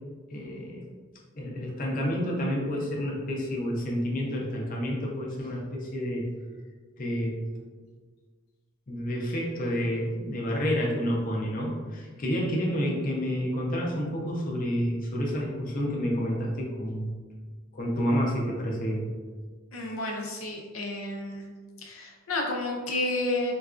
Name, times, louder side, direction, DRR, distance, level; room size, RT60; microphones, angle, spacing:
voice 1, 0.3-0.9 1.3-6.3 7.0-7.4 8.9-17.2 17.7-19.0, equal, 40° left, -2 dB, 0.6 m, -29 dB
voice 2, 19.7-21.5 21.8-23.5, left 2 dB, 85° left, 0 dB, 0.6 m, -31 dB
3.9 x 2.3 x 2.4 m, 1.5 s
head